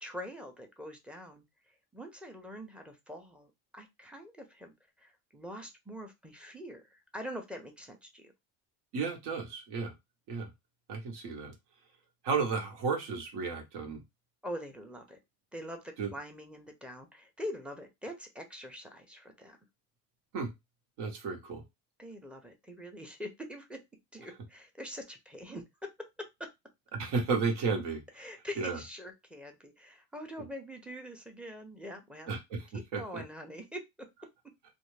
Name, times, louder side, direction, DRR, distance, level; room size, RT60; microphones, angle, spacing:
voice 1, 0.0-1.4 1.9-8.3 14.4-15.2 15.5-19.6 22.0-23.8 24.1-25.6 26.2-26.5 28.1-32.3 32.7-33.8, equal, 5° right, 4 dB, 0.5 m, -44 dB
voice 2, 8.9-9.9 10.3-10.5 10.9-11.5 12.2-14.0 16.0-16.1 20.3-20.5 21.0-21.6 26.9-28.0 28.6-28.8 32.3-32.7 32.9-33.2, right 4 dB, 75° right, 4 dB, 1.2 m, -33 dB
2.5 x 2.4 x 3.2 m, 0.20 s
cardioid pair, 140°, 40 cm